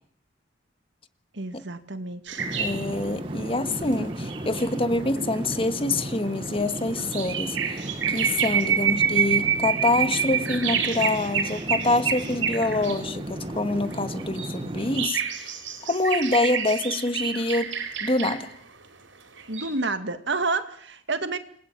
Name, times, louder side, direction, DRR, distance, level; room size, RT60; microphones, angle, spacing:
voice 1, 1.3-2.4 19.5-21.4, right 3 dB, 65° right, 2.3 m, -29 dB
sound 1, 2.3-13.1 13.6-18.5 19.4-19.8, right 7 dB, 85° right, 5.0 m, -28 dB
sound 2, 2.4-15.1, right 1 dB, 30° right, 1.2 m, -35 dB
voice 2, 2.6-7.8 8.1-15.5 15.8-17.7 18.0-18.5, left 2 dB, 30° left, 1.8 m, -26 dB
29.0 x 21.5 x 9.1 m
head